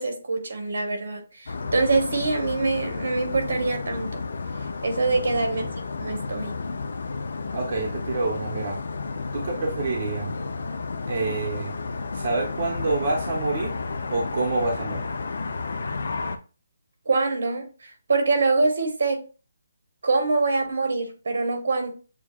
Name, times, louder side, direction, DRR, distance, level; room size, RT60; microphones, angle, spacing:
voice 1, 0.0-4.2 4.8-5.6 6.0-6.6 17.1-17.7 18.1-19.2 20.0-21.9, right 3 dB, 65° right, 5 dB, 1.2 m, -24 dB
sound 1, 1.5-16.4, left 4 dB, 60° left, 0.5 m, -32 dB
voice 2, 5.2-5.7 7.5-8.8 9.3-10.3 11.1-11.7 12.1-13.7 14.1-15.1, right 3 dB, 40° right, -1 dB, 0.9 m, -27 dB
6.8 x 2.3 x 2.4 m, 0.34 s
hypercardioid pair, 175°, 0 cm